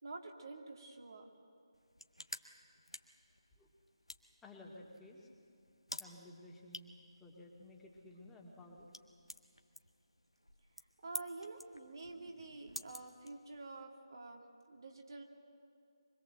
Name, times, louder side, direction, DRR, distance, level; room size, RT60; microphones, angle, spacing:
voice 1, 0.0-1.3 11.0-15.2, right 3 dB, 50° right, 2 dB, 2.6 m, -49 dB
sound 1, 1.7-13.8, left 1 dB, 90° left, 1.5 m, -52 dB
voice 2, 4.4-5.3 6.0-8.9, left 1 dB, 5° left, -2 dB, 2.3 m, -55 dB
25.0 x 21.0 x 7.8 m, 2.5 s
figure-of-eight pair, 150°, 3 cm